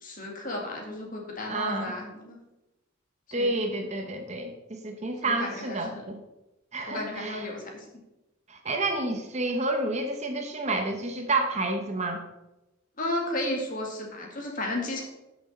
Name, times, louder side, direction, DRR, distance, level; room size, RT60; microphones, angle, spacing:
voice 1, 0.0-2.4 3.4-3.5 5.2-6.0 6.9-7.8 13.0-15.0, left 1 dB, 40° left, 0 dB, 2.0 m, -33 dB
voice 2, 1.5-1.9 3.3-6.2 6.7-7.5 8.5-12.2, right 2 dB, 35° right, 5 dB, 0.9 m, -29 dB
12.0 x 6.1 x 4.1 m, 0.98 s
head